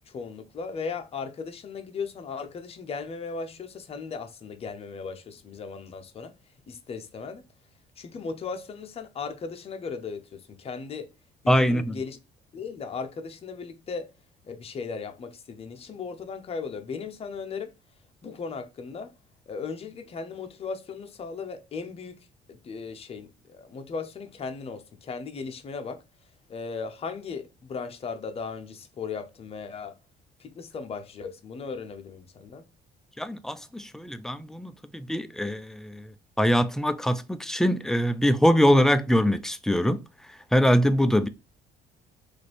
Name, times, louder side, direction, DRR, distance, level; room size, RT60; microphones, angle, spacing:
voice 1, 0.1-6.3 6.7-7.5 8.0-11.1 11.4-12.2 12.5-14.1 14.4-17.7 18.2-19.1 19.5-22.2 22.5-26.0 26.5-30.0 30.4-32.7, left 5 dB, 35° left, 0.7 m, -37 dB
voice 2, 11.5-12.0 33.2-36.1 36.4-40.0 40.5-41.3, equal, 5° left, 0.3 m, -23 dB
3.1 x 2.5 x 4.2 m
cardioid pair, 110°, 17 cm